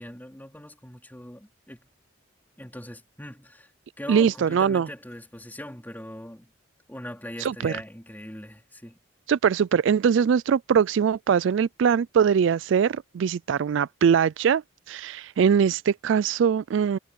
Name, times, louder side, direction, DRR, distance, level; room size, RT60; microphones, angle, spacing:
voice 1, 0.0-1.9 2.6-3.7 4.0-6.5 6.9-9.0, left 1 dB, 10° left, 4.2 m, -41 dB
voice 2, 4.1-4.9 7.4-7.8 9.3-14.6 14.9-17.0, right 7 dB, 60° right, 0.3 m, -22 dB
head